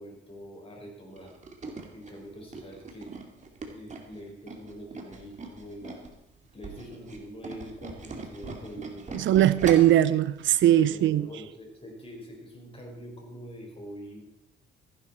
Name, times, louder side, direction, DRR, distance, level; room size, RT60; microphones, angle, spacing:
voice 1, 0.0-1.3 1.9-3.1 3.7-6.0 6.5-9.2 10.9-14.3, equal, 30° left, 5.1 m, -44 dB
Tools, 1.2-6.1 6.5-10.0 10.4-10.6 10.9-11.0, right 4 dB, 35° right, 2.4 m, -40 dB
voice 2, 9.1-11.3, right 12 dB, 75° right, 0.6 m, -20 dB
15.0 x 11.0 x 4.4 m
cardioid pair, 90°, 20 cm